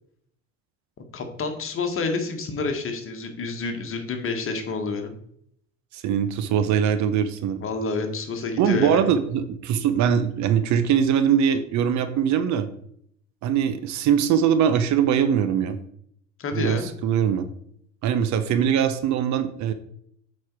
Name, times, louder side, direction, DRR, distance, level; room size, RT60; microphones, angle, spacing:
voice 1, 1.0-5.2 7.6-9.0 16.4-16.9, left 3 dB, 35° left, 5 dB, 1.6 m, -28 dB
voice 2, 5.9-7.6 8.6-12.7 13.4-15.8 16.5-17.5 18.0-19.7, right 8 dB, 50° right, 11 dB, 0.8 m, -22 dB
8.4 x 4.3 x 4.7 m, 0.68 s
hypercardioid pair, 65°, 37 cm